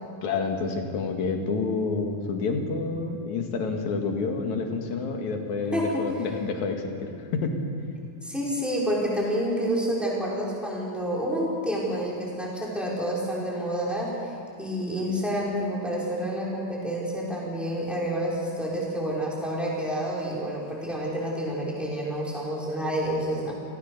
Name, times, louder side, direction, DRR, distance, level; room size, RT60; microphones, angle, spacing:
voice 1, 0.2-7.6, left 4 dB, 60° left, 3 dB, 3.2 m, -29 dB
voice 2, 5.7-6.0 8.2-14.3 14.6-23.5, equal, ahead, -5 dB, 5.4 m, -29 dB
28.5 x 18.5 x 6.7 m, 2.3 s
omnidirectional pair, 4.0 m